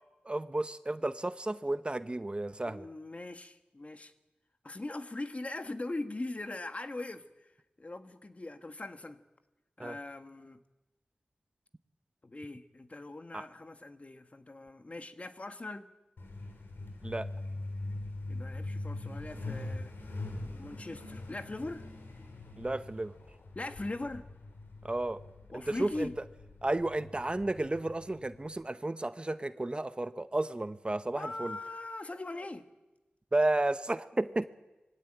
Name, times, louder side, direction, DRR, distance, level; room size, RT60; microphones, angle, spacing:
voice 1, 0.2-2.9 9.8-10.0 13.3-13.4 17.0-17.3 22.6-23.1 24.8-25.2 25.5-26.1 26.6-31.6 33.3-34.5, right 2 dB, 30° right, 12 dB, 0.9 m, -32 dB
voice 2, 2.6-4.1 4.6-7.5 7.8-9.2 9.8-10.6 12.2-15.9 18.3-19.9 20.4-21.9 23.5-24.3 25.5-26.1 31.1-32.6, left 2 dB, 40° left, 9 dB, 1.4 m, -41 dB
Truck, 16.2-28.5, left 2 dB, 85° left, 3.6 m, -42 dB
22.5 x 16.5 x 9.1 m, 1.1 s
wide cardioid pair, 60°, 4 cm